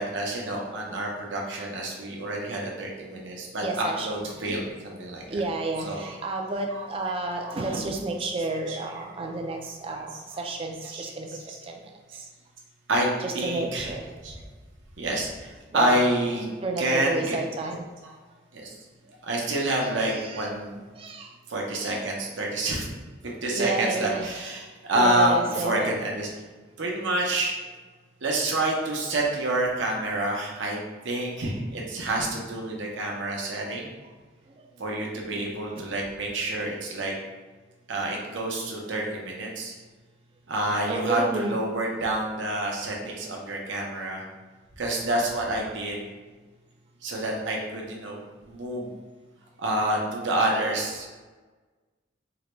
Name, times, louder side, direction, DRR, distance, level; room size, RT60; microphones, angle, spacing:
voice 1, 0.0-5.4 5.8-6.1 6.7-6.8 7.4-7.6 8.7-8.8 10.9-11.0 12.9-13.1 13.3-13.9 14.2-14.3 15.0-16.4 16.8-17.4 18.5-18.7 19.2-20.8 21.5-22.9 23.2-26.3 26.8-27.6 28.2-30.8 31.0-33.9 34.8-37.1 37.9-39.7 40.5-44.2 44.8-46.0 47.0-48.2 48.5-48.9 49.6-51.1, right 1 dB, 70° right, -1 dB, 0.7 m, -28 dB
voice 2, 3.6-4.3 5.3-11.3 11.7-11.8 12.1-12.3 13.2-14.1 15.7-16.2 16.6-17.9 19.8-20.6 21.0-21.3 21.7-22.2 23.5-24.3 24.9-26.0 30.1-30.3 31.2-31.3 33.6-33.7 34.8-34.9 35.7-35.8 40.9-41.6, right 2 dB, 30° right, 2 dB, 0.3 m, -31 dB
3.8 x 2.2 x 3.0 m, 1.3 s
head